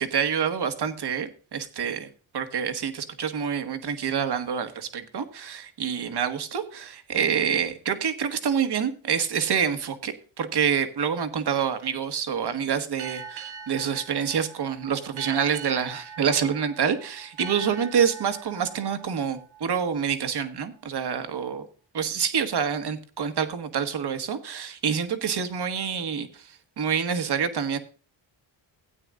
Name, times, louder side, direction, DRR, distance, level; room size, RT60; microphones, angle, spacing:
voice 1, 0.0-2.1 2.3-21.6 21.9-27.8, right 7 dB, 55° right, 1.6 m, -27 dB
sound 1, 13.0-20.3, right 6 dB, 85° right, 3.7 m, -42 dB
16.5 x 9.0 x 2.5 m
cardioid pair, 95°, 46 cm